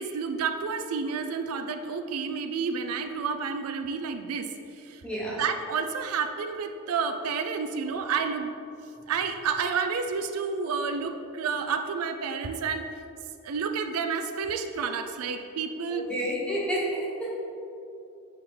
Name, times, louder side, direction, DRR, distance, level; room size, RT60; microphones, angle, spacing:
voice 1, 0.0-4.5 4.8-5.0 5.4-8.5 9.1-12.9 13.4-16.1, right 5 dB, 85° right, 7 dB, 0.4 m, -30 dB
voice 2, 5.0-5.4 15.9-17.3, equal, 5° left, -5 dB, 1.1 m, -30 dB
9.3 x 3.6 x 3.9 m, 2.7 s
head